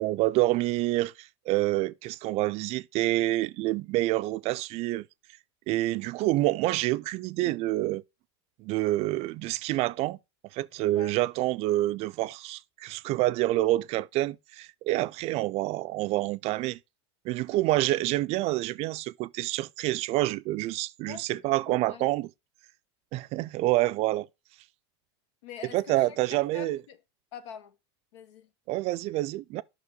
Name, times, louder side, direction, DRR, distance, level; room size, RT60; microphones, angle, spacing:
voice 1, 0.0-5.1 5.7-8.0 8.6-10.2 10.5-16.8 17.2-22.3 23.1-24.3 25.7-26.8 28.7-29.6, right 17 dB, 45° right, 0.4 m, -27 dB
voice 2, 21.1-22.1 25.4-27.0 27.3-27.8 28.1-28.5, left 8 dB, 85° left, 1.2 m, -45 dB
9.5 x 5.9 x 3.8 m
supercardioid pair, 120°, 15 cm